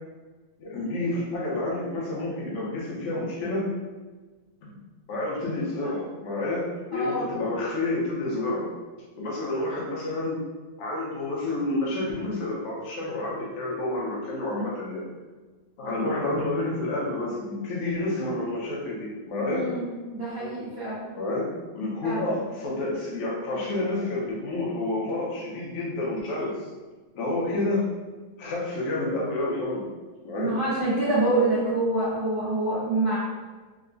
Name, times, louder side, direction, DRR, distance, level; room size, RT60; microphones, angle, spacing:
voice 1, 0.6-3.7 4.6-4.7 5.1-8.7 9.2-10.4 10.8-15.0 15.8-19.7 21.2-26.5 27.1-27.9 28.4-29.8 30.2-30.5, left 2 dB, 70° left, -5 dB, 1.4 m, -29 dB
voice 2, 6.9-7.4 19.4-21.1 22.0-22.3 30.3-33.2, right 2 dB, 90° right, -12 dB, 0.8 m, -26 dB
4.5 x 2.1 x 2.5 m, 1.3 s
omnidirectional pair, 3.3 m